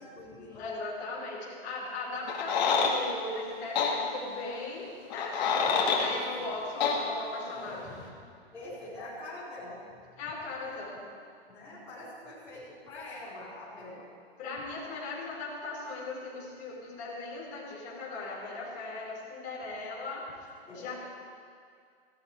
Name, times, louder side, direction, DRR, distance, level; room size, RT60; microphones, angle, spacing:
voice 1, 0.0-0.7 5.4-5.7 6.0-6.8 7.4-8.1 8.5-9.8 10.1-10.2 10.6-10.8 11.5-14.1 20.6-20.9, left 2 dB, 10° left, -14 dB, 4.8 m, -44 dB
voice 2, 0.6-8.0 10.2-11.1 14.4-20.2 20.7-20.9, left 3 dB, 25° left, -5 dB, 4.5 m, -38 dB
sound 1, 2.3-2.9 3.8-3.9 5.1-6.1 6.8-7.0, left 6 dB, 40° left, 2.2 m, -26 dB
16.5 x 13.5 x 5.1 m, 2.2 s
hypercardioid pair, 165°, 32 cm